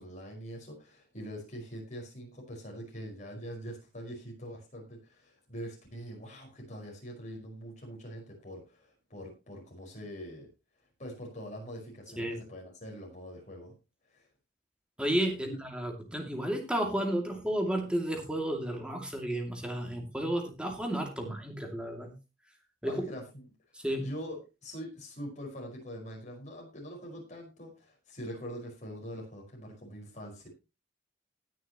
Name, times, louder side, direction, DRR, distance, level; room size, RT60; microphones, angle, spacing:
voice 1, 0.0-10.5 11.0-13.7 14.1-14.3 15.5-15.6 22.8-23.4 24.0-30.5, equal, 40° left, 0 dB, 5.1 m, -43 dB
voice 2, 15.0-22.1 22.8-23.0 23.7-24.1, right 1 dB, 5° right, 3 dB, 2.5 m, -32 dB
19.5 x 6.5 x 3.0 m, 0.27 s
head